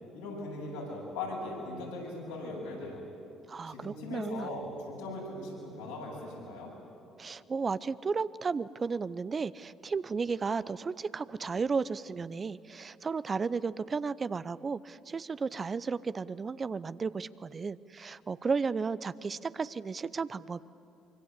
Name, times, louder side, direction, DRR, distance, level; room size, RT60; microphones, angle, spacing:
voice 1, 0.1-3.0 3.7-6.7, left 2 dB, 85° left, -4 dB, 7.9 m, -39 dB
voice 2, 3.5-4.5 7.2-20.6, right 5 dB, 35° right, 16 dB, 0.7 m, -34 dB
24.5 x 24.0 x 8.4 m, 2.7 s
hypercardioid pair, 55°, 0 cm